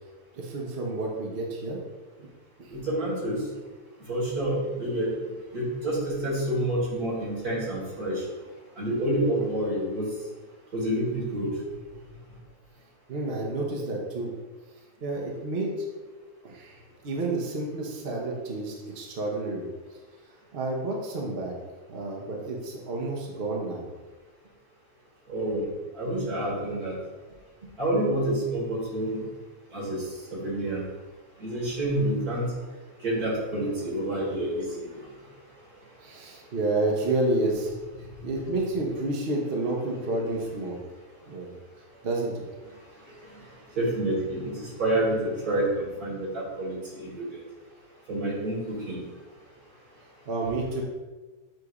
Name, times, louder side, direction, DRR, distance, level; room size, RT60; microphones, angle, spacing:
voice 1, 0.3-1.8 2.2-2.3 2.6-2.7 13.1-14.3 15.0-15.9 16.4-16.8 17.0-19.7 20.5-21.5 21.9-23.8 25.5-25.6 26.0-26.1 26.6-26.7 27.6-27.7 36.0-37.7 38.2-40.8 41.3-41.5 42.0-42.4 50.3-50.8, right 2 dB, 45° right, -1 dB, 1.0 m, -30 dB
voice 2, 2.7-3.4 4.1-5.1 5.5-8.2 8.8-10.1 10.7-11.5 25.3-25.6 26.0-27.0 27.8-29.2 29.7-30.0 30.3-30.8 31.4-32.5 33.0-34.9 43.8-45.2 45.5-47.2 48.1-49.0, right 1 dB, 85° right, -5 dB, 2.7 m, -28 dB
7.8 x 2.7 x 4.8 m, 1.3 s
omnidirectional pair, 1.6 m